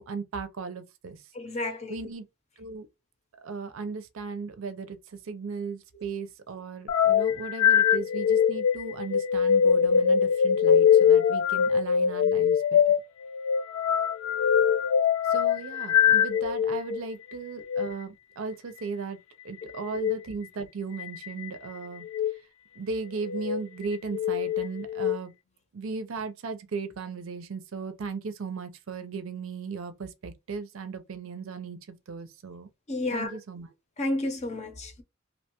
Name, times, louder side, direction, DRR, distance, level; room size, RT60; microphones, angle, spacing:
voice 1, 0.0-1.2 1.9-2.3 2.6-2.9 3.4-12.8 15.3-19.2 19.4-22.1 22.8-25.3 25.7-32.7 33.1-33.7, right 4 dB, 75° right, 0.5 m, -36 dB
voice 2, 1.3-2.0 16.9-17.0 32.9-33.4 34.0-35.0, left 2 dB, 35° left, 0.6 m, -31 dB
sound 1, 6.9-16.8 17.6-17.9 19.9-20.2 21.0-21.5 22.0-22.3 23.1-23.6 24.1-25.2, left 8 dB, 85° left, 0.3 m, -23 dB
2.6 x 2.2 x 2.9 m
head